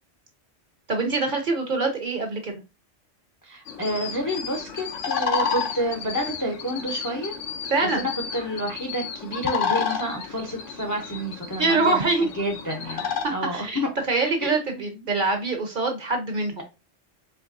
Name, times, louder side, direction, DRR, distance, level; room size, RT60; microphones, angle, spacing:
voice 1, 0.9-2.5 7.7-8.1 11.6-12.3 13.2-16.6, right 3 dB, 45° right, 4 dB, 0.8 m, -24 dB
voice 2, 3.4-7.3 8.0-12.1 12.4-13.1 13.3-13.9 14.4-15.1, equal, 20° left, 3 dB, 0.5 m, -29 dB
sound 1, 3.7-13.2, left 6 dB, 75° left, 1.1 m, -31 dB
4.5 x 3.2 x 2.5 m, 0.27 s
omnidirectional pair, 1.3 m